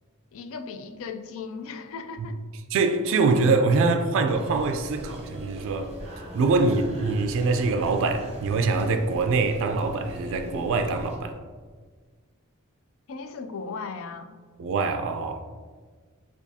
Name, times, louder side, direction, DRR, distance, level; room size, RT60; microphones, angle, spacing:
voice 1, 0.3-2.4 13.1-14.3, left 5 dB, 65° left, 0.4 m, -37 dB
voice 2, 2.7-5.9 6.3-11.4 14.6-15.4, right 3 dB, 60° right, 0.3 m, -24 dB
sound 1, 4.3-11.2, right 1 dB, 30° right, 0.8 m, -40 dB
6.9 x 2.4 x 2.7 m
head